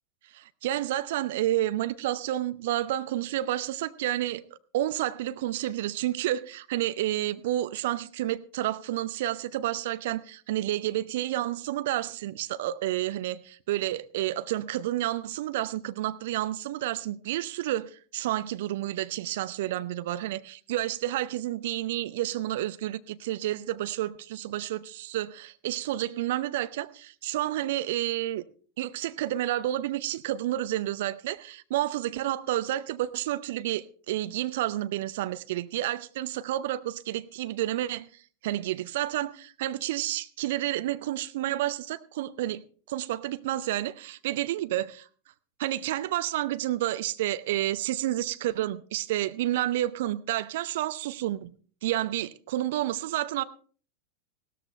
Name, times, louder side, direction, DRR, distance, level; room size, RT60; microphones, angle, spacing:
voice 1, 0.3-4.4 4.7-28.4 28.8-38.1 38.4-44.9 45.6-51.5 51.8-53.4, right 14 dB, 55° right, 0.8 m, -30 dB
16.5 x 13.5 x 3.2 m
figure-of-eight pair, 90°, 0 cm